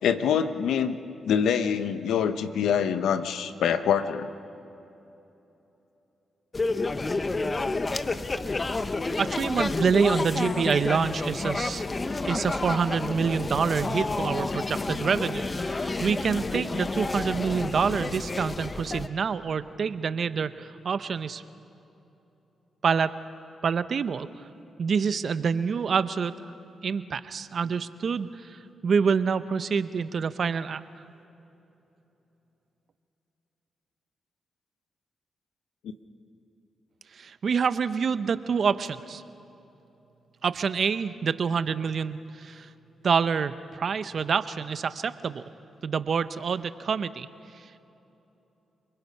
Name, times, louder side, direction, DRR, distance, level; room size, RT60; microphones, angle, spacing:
voice 1, 0.0-1.0 1.2-4.3, left 8 dB, 80° left, 10 dB, 1.0 m, -25 dB
sound 1, 6.5-19.1, left 3 dB, 35° left, 1.0 m, -30 dB
voice 2, 9.2-11.9 12.3-21.4 22.8-23.1 23.6-24.3 24.8-26.4 26.8-30.8 37.1-39.2 40.4-42.7 43.0-45.4 45.8-47.3, right 6 dB, 60° right, 13 dB, 0.8 m, -27 dB
30.0 x 21.0 x 5.5 m, 3.0 s
supercardioid pair, 50°, 0 cm